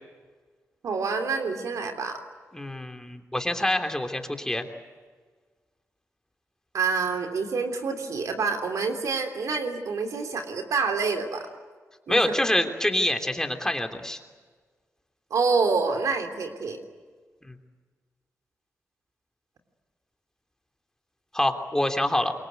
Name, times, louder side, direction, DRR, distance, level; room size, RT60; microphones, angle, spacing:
voice 1, 0.8-2.2 6.7-11.5 12.1-12.3 15.3-16.8, right 4 dB, 75° right, 6 dB, 3.3 m, -27 dB
voice 2, 2.5-4.6 12.1-14.2 17.4-17.5 21.3-22.3, left 1 dB, 10° left, 4 dB, 3.2 m, -26 dB
27.0 x 23.0 x 9.4 m, 1.5 s
cardioid pair, 65°, 6 cm